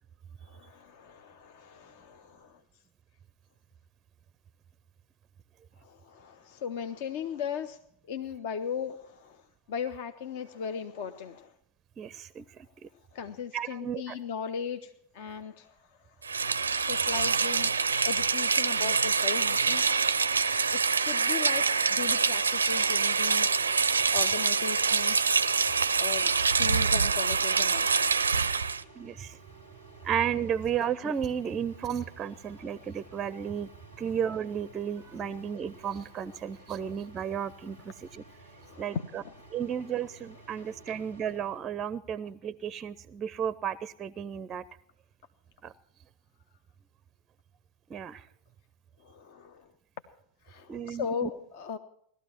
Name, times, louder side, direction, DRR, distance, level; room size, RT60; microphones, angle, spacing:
voice 1, 0.4-2.6 5.8-7.8 8.1-9.4 9.7-11.5 13.1-15.8 16.4-19.8 20.7-21.6 21.9-23.5 24.1-25.3 25.9-27.9 36.8-36.9 38.6-39.3 40.6-41.0 49.0-49.7 50.4-51.8, left 7 dB, 50° left, 9 dB, 0.7 m, -37 dB
voice 2, 12.0-12.7 13.5-14.2 29.0-29.4 30.0-33.7 34.0-38.2 38.8-39.2 39.5-44.6 45.6-45.7 47.9-48.2 50.7-51.3, right 8 dB, 25° right, 19 dB, 0.5 m, -33 dB
Rain, 16.2-28.8, right 5 dB, 75° right, 0.4 m, -25 dB
sound 1, 21.7-41.6, right 2 dB, 80° left, 3.2 m, -54 dB
18.0 x 13.0 x 4.5 m, 0.69 s
figure-of-eight pair, 90°, 0 cm